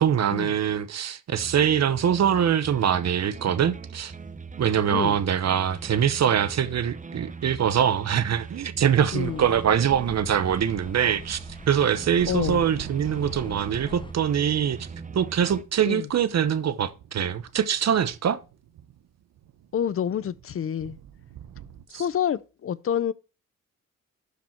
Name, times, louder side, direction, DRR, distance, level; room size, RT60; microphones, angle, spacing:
voice 1, 0.0-4.1 4.6-14.9 15.1-18.4 21.9-22.0, right 8 dB, 55° right, 0.8 m, -23 dB
sound 1, 1.4-15.6, right 5 dB, 25° right, 0.7 m, -41 dB
sound 2, 8.9-14.1, left 3 dB, 15° left, 0.8 m, -44 dB
voice 2, 9.1-9.5 12.3-12.6 15.9-16.1 19.7-21.0 21.9-23.1, left 9 dB, 45° left, 0.5 m, -28 dB
Thunder, 12.1-21.9, right 10 dB, 85° right, 0.9 m, -45 dB
11.5 x 5.1 x 4.3 m
cardioid pair, 110°, 32 cm